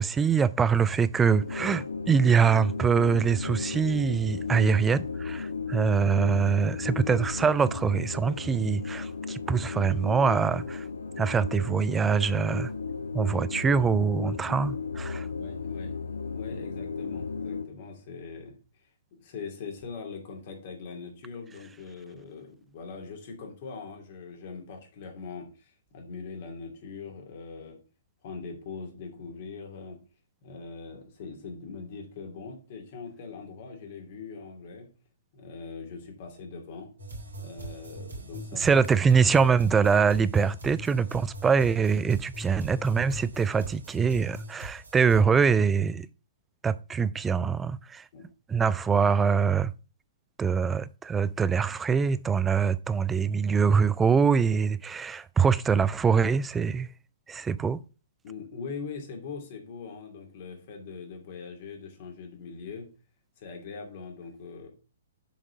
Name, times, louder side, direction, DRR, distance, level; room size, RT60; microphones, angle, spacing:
voice 1, 0.0-10.8 11.2-12.7 13.1-15.3 38.6-46.1 46.6-48.0 48.5-49.7 50.4-56.9 57.3-57.8, right 6 dB, 10° right, 0.3 m, -24 dB
sound 1, 1.3-17.7, left 4 dB, 70° left, 1.0 m, -35 dB
voice 2, 15.4-18.6 19.1-27.8 28.2-30.0 30.4-34.9 35.3-36.9 37.4-38.8 39.2-39.5 40.3-40.4 48.1-48.3 58.2-62.9 63.4-64.7, left 5 dB, 45° left, 2.6 m, -41 dB
sound 2, 37.0-45.2, right 1 dB, 75° right, 3.2 m, -41 dB
7.4 x 5.1 x 5.0 m
figure-of-eight pair, 120°, 0 cm